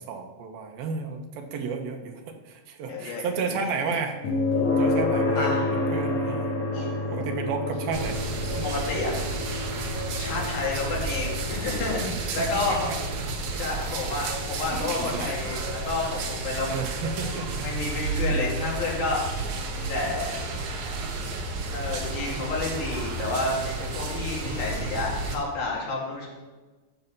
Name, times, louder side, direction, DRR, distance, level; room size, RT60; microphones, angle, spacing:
voice 1, 0.0-4.2 4.8-5.5 5.9-6.5 7.1-8.2 10.4-10.5 12.5-12.8 13.7-13.8 14.7-15.4 16.7-17.7 18.1-18.6, right 5 dB, 85° right, 4 dB, 2.9 m, -32 dB
voice 2, 2.9-3.9 5.4-5.7 6.7-6.9 8.6-9.3 10.1-12.9 13.5-16.7 17.2-19.2 19.7-20.3 21.7-26.3, left 3 dB, 80° left, -3 dB, 4.1 m, -30 dB
sound 1, 4.2-19.2, left 2 dB, 55° left, 2.1 m, -30 dB
sound 2, 7.9-25.4, right 3 dB, 70° right, 1.6 m, -32 dB
13.0 x 5.6 x 5.5 m, 1.2 s
omnidirectional pair, 4.1 m